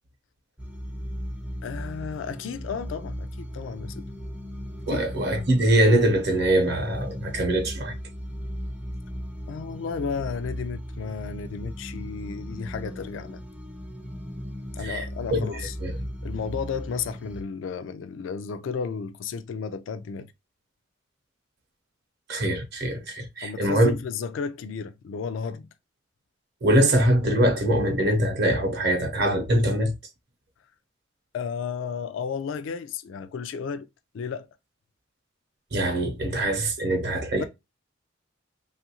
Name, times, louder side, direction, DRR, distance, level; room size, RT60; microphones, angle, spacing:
sound 1, 0.6-17.4, equal, 5° right, 0.4 m, -37 dB
voice 1, 1.6-4.1 4.9-5.1 9.5-13.4 14.7-15.8 16.2-20.3 23.4-25.7 31.3-33.9 34.1-34.5 37.4-37.5, left 6 dB, 70° left, 0.3 m, -33 dB
voice 2, 4.9-7.9 14.8-15.0 15.3-15.9 22.3-23.9 26.6-29.9 35.7-37.4, right 1 dB, 55° right, 0.7 m, -23 dB
3.0 x 2.4 x 2.8 m
head